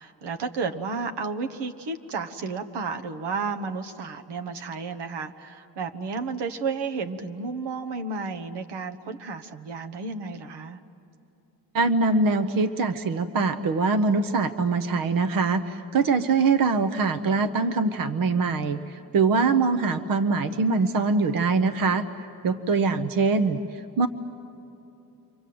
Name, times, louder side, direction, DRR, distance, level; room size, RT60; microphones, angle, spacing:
voice 1, 0.0-10.8 22.9-23.0, right 4 dB, 85° right, 6 dB, 1.3 m, -32 dB
voice 2, 11.7-22.1 22.4-24.1, right 4 dB, 55° right, 9 dB, 0.9 m, -23 dB
29.5 x 24.5 x 7.8 m, 2.9 s
cardioid pair, 145°, 40 cm